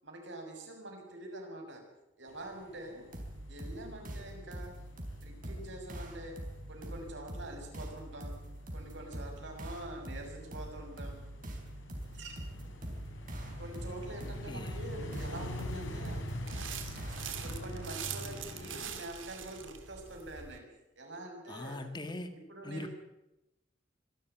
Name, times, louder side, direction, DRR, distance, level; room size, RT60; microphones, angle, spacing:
voice 1, 0.0-1.8 2.2-3.0 3.5-4.7 5.2-6.3 6.7-8.3 8.7-11.1 12.1-12.4 13.6-16.2 17.4-20.6 21.0-21.8 22.3-22.9, right 1 dB, 65° right, 2 dB, 6.6 m, -45 dB
sound 1, 2.3-19.0, left 1 dB, 80° left, 4.1 m, -46 dB
sound 2, 3.1-17.9, right 1 dB, 45° right, 4.5 m, -44 dB
voice 2, 14.2-14.8 21.5-22.3 22.6-22.9, left 1 dB, 25° left, 8 dB, 1.6 m, -41 dB
sound 3, 16.5-20.6, right 8 dB, 90° right, 2.8 m, -43 dB
25.5 x 12.5 x 9.2 m, 0.93 s
head